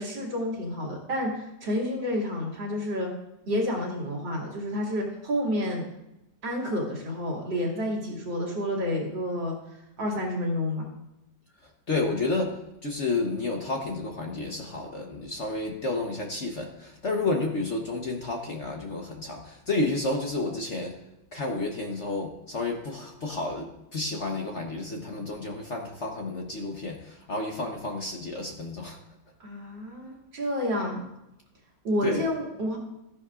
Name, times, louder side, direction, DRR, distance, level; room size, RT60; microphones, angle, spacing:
voice 1, 0.0-3.1 3.5-5.8 6.4-9.5 10.0-10.9 29.4-31.0 31.8-32.8, left 1 dB, 70° right, -3 dB, 3.1 m, -29 dB
voice 2, 11.9-21.0 21.3-29.0 32.0-32.3, left 2 dB, 45° left, 1 dB, 1.0 m, -31 dB
14.0 x 10.0 x 2.4 m, 0.90 s
omnidirectional pair, 2.1 m